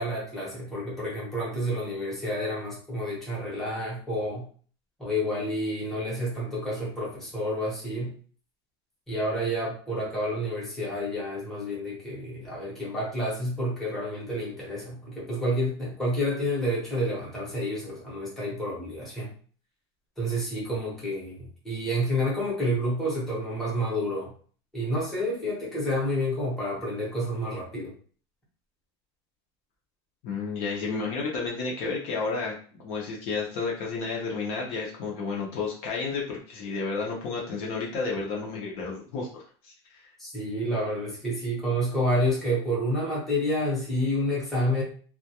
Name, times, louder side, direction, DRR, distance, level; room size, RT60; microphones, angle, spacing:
voice 1, 0.0-4.5 5.0-8.1 9.1-19.3 20.2-24.3 24.7-27.9 40.2-44.8, equal, ahead, -7 dB, 0.8 m, -29 dB
voice 2, 30.2-40.0, left 4 dB, 45° left, -2 dB, 0.6 m, -31 dB
2.2 x 2.1 x 2.8 m, 0.43 s
cardioid pair, 175°, 13 cm